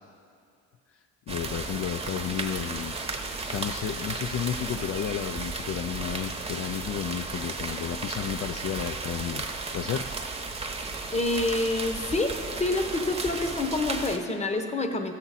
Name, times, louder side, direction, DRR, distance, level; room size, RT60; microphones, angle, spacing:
voice 1, 1.3-9.4 9.7-10.1, left 9 dB, 50° left, 7 dB, 0.4 m, -32 dB
sound 1, 1.3-14.2, right 3 dB, 20° right, 0.9 m, -34 dB
voice 2, 11.1-12.3 12.6-15.1, left 2 dB, 20° left, 7 dB, 0.9 m, -27 dB
14.5 x 7.4 x 4.1 m, 2.4 s
cardioid pair, 90°, 30 cm